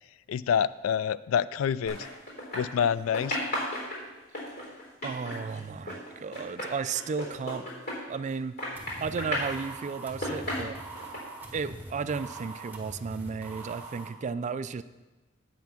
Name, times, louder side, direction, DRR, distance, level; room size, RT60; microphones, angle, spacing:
voice 1, 0.3-2.1 2.5-3.4, left 8 dB, 80° left, 17 dB, 0.3 m, -27 dB
sound 1, 1.8-2.9 3.1-8.3 8.6-9.6 10.0-11.2, left 1 dB, 55° left, 3.7 m, -34 dB
voice 2, 5.0-7.7 8.1-8.6 9.0-10.8 11.5-14.8, right 5 dB, 35° right, 14 dB, 0.3 m, -34 dB
sound 2, 8.8-14.1, right 2 dB, 10° right, 1.4 m, -43 dB
8.4 x 5.9 x 7.1 m, 1.2 s
head